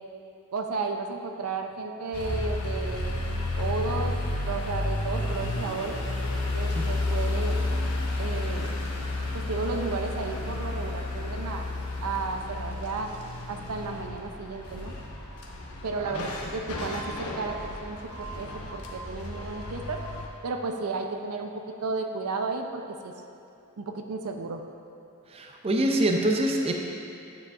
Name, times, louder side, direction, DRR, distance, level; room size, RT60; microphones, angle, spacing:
voice 1, 0.5-3.1 3.6-4.2 4.5-6.0 6.5-7.6 8.2-8.7 9.3-11.7 12.0-13.1 13.5-14.9 15.8-20.0 20.4-23.1 23.8-24.6, right 4 dB, 85° right, 4 dB, 0.5 m, -33 dB
sound 1, 2.1-20.3, left 2 dB, 85° left, 0.9 m, -32 dB
voice 2, 25.3-26.7, right 1 dB, 25° right, 1 dB, 0.5 m, -25 dB
9.5 x 7.0 x 2.5 m, 2.7 s
head